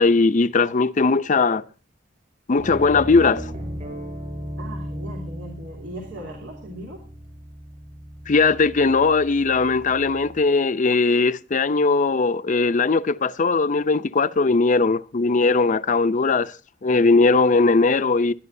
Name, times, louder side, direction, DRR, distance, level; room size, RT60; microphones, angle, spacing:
voice 1, 0.0-1.6 2.5-3.5 8.3-16.5 16.8-18.3, left 3 dB, 45° left, 0.6 m, -19 dB
sound 1, 2.6-10.5, equal, 45° right, 5.7 m, -36 dB
voice 2, 4.6-7.0 16.3-16.4, right 1 dB, 90° right, 3.0 m, -38 dB
22.0 x 10.5 x 2.7 m
head